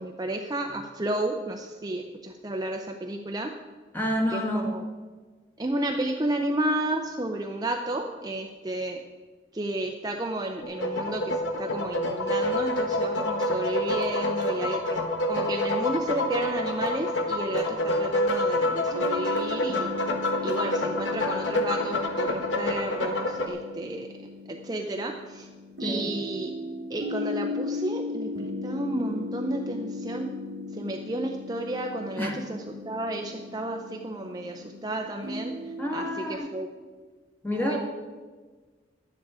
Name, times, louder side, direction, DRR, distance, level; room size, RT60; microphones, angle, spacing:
voice 1, 0.0-3.5 4.3-4.8 5.6-9.0 9.5-15.0 15.3-19.9 20.4-24.1 24.5-25.5 25.8-26.5 26.9-30.3 30.7-35.5 35.9-36.7 37.5-37.8, right 1 dB, 20° right, 3 dB, 0.6 m, -32 dB
voice 2, 3.9-4.7 25.8-26.1 32.2-32.4 35.8-36.5 37.4-37.8, equal, 10° left, 0 dB, 1.6 m, -28 dB
sound 1, 10.6-23.5, left 1 dB, 80° left, 1.3 m, -27 dB
sound 2, 18.9-36.4, left 3 dB, 70° right, 1.1 m, -37 dB
11.5 x 9.7 x 4.9 m, 1.4 s
head